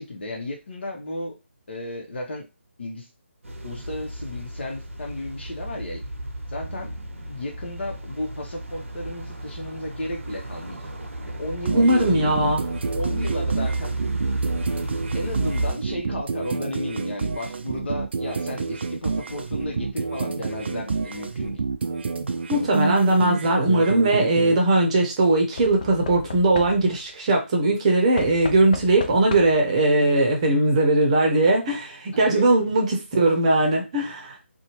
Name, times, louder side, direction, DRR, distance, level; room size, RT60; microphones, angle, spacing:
voice 1, 0.0-1.3 1.7-2.5 2.8-3.1 3.6-6.0 6.5-6.9 7.3-10.8 11.2-12.5 12.9-13.9 15.1-21.7 32.1-32.6, left 1 dB, 60° left, 1 dB, 0.9 m, -33 dB
sound 1, 3.4-15.7, right 2 dB, 90° right, 0.7 m, -32 dB
sound 2, 11.6-24.6, right 4 dB, 60° right, 0.4 m, -28 dB
voice 2, 11.7-12.6 22.5-34.4, right 2 dB, 30° right, 1 dB, 0.7 m, -20 dB
Knock / Wood, 23.4-23.9 25.6-27.1 28.2-29.7 30.8-30.9 31.1-31.2, left 5 dB, 40° left, 0.3 m, -36 dB
2.7 x 2.2 x 2.9 m, 0.28 s
figure-of-eight pair, 155°, 7 cm